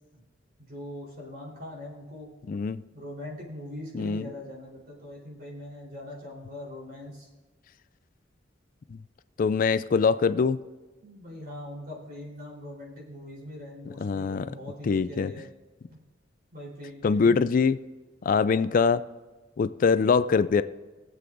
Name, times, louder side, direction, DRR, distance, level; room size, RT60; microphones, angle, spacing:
voice 1, 0.6-2.3 2.9-7.3 11.0-15.5 15.9-16.0 16.5-17.5, left 1 dB, 55° right, -4 dB, 3.8 m, -41 dB
voice 2, 2.5-2.8 3.9-4.3 8.9-9.0 9.4-10.6 14.0-14.5 14.8-15.3 17.0-17.8 18.2-19.0 19.6-20.6, left 5 dB, 45° left, 13 dB, 0.3 m, -23 dB
21.5 x 7.6 x 2.6 m, 1.2 s
head